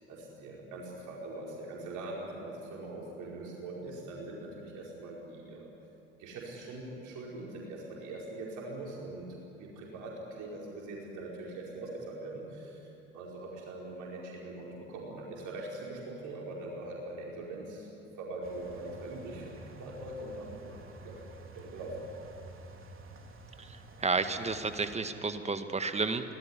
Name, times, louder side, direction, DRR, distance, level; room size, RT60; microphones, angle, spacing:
voice 1, 0.1-5.7 6.2-9.3 9.6-12.8 13.1-17.9 18.2-20.6 21.0-21.1 21.5-22.0, right 2 dB, 55° right, -3 dB, 5.1 m, -42 dB
sound 1, 18.4-25.0, right 2 dB, 35° right, 3.3 m, -50 dB
voice 2, 23.6-26.4, right 4 dB, 20° right, 9 dB, 1.8 m, -32 dB
24.5 x 19.0 x 9.9 m, 2.8 s
figure-of-eight pair, 55°, 36 cm